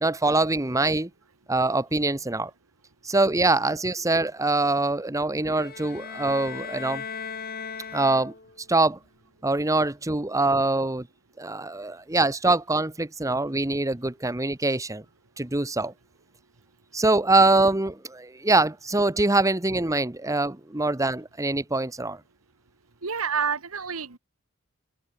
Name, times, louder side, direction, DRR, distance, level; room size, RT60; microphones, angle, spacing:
voice 1, 0.0-1.1 1.5-2.5 3.0-7.0 7.9-8.3 8.7-9.0 9.4-11.1 11.4-15.0 15.4-15.9 16.9-22.2, right 2 dB, 15° right, 1.0 m, -24 dB
sound 1, 5.4-8.7, left 6 dB, 45° left, 4.2 m, -37 dB
voice 2, 23.0-24.2, right 6 dB, 85° right, 1.8 m, -28 dB
open air
head